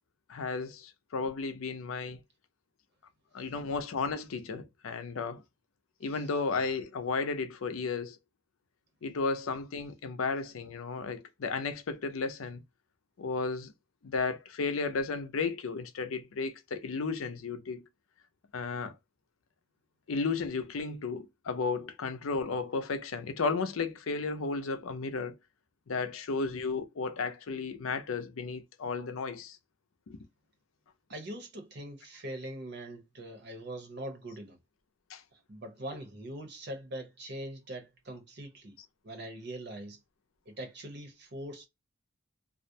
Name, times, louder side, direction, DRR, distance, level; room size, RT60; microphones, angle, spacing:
voice 1, 0.3-2.2 3.3-5.4 6.0-8.2 9.0-12.6 13.2-13.7 14.0-17.8 18.5-18.9 20.1-25.4 25.9-29.6 30.1-30.2 35.1-35.2, left 4 dB, 85° left, 0.5 m, -33 dB
voice 2, 31.1-34.6 35.5-38.8 39.0-40.0 40.5-41.7, right 1 dB, 55° right, 0.8 m, -42 dB
2.4 x 2.1 x 2.6 m
head